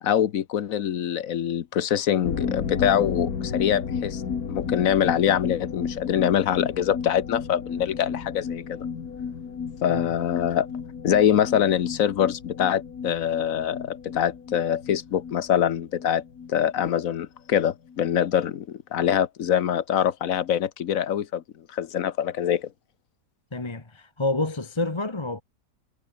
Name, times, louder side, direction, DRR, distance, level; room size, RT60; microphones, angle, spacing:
voice 1, 0.0-4.2 4.5-8.9 9.8-10.7 11.0-16.2 16.5-21.4 21.7-22.7, left 9 dB, 65° left, 1.3 m, -24 dB
sound 1, 2.2-17.6 17.9-18.0 18.3-18.4, left 6 dB, 80° left, 2.3 m, -33 dB
voice 2, 23.5-25.4, left 2 dB, 20° left, 1.2 m, -28 dB
omnidirectional pair, 1.6 m